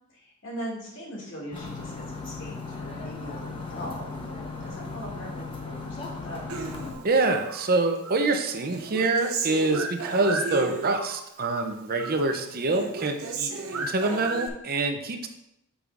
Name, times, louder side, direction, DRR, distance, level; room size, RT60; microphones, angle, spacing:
voice 1, 0.1-6.7, equal, 60° left, -3 dB, 2.3 m, -40 dB
sound 1, 1.5-6.9, left 3 dB, 25° left, 0.9 m, -37 dB
Human voice, 6.5-7.7 8.0-11.2 11.5-12.2 12.5-14.5, right 3 dB, 80° right, 0.8 m, -34 dB
voice 2, 7.0-15.3, right 3 dB, 45° right, 5 dB, 0.6 m, -26 dB
8.4 x 6.2 x 2.5 m, 0.81 s
head